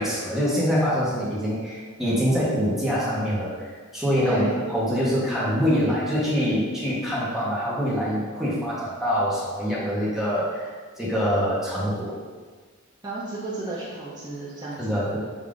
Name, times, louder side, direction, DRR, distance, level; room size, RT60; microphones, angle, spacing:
voice 1, 0.0-4.4 4.7-10.7 11.0-12.2 14.8-15.2, equal, ahead, -8 dB, 1.0 m, -25 dB
voice 2, 4.2-4.6 13.0-14.9, right 2 dB, 20° right, -7 dB, 0.6 m, -33 dB
5.2 x 2.7 x 3.7 m, 1.5 s
head